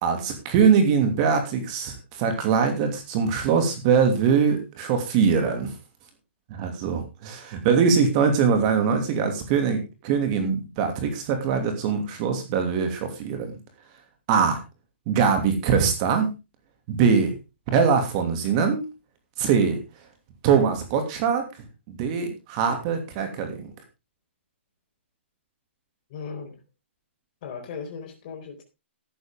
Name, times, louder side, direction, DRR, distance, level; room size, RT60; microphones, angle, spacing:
voice 1, 0.0-5.7 6.5-13.5 14.3-14.6 15.1-16.3 16.9-17.3 17.7-18.9 19.4-19.8 20.4-21.4 21.9-23.7, right 6 dB, 30° right, 6 dB, 2.7 m, -22 dB
voice 2, 26.1-26.5 27.4-28.6, left 6 dB, 40° left, 1 dB, 4.3 m, -37 dB
13.5 x 10.0 x 3.8 m, 0.26 s
hypercardioid pair, 155°, 7 cm